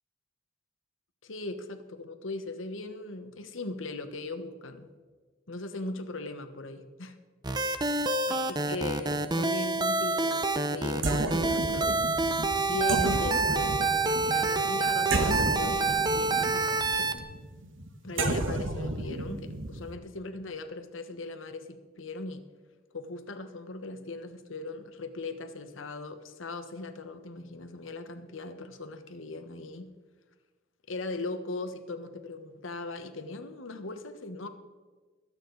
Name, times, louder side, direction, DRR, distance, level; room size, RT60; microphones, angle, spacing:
voice 1, 1.2-4.9 5.5-7.2 7.6-7.9 8.3-10.4 10.7-11.9 12.7-17.1 18.0-22.4 22.9-29.9 30.9-34.5, left 3 dB, 85° left, 8 dB, 1.2 m, -39 dB
sound 1, 7.4-17.2, right 3 dB, 20° right, 0.6 m, -27 dB
sound 2, 10.9-19.9, right 2 dB, 75° right, 1.2 m, -32 dB
22.5 x 9.0 x 4.0 m, 1.4 s
head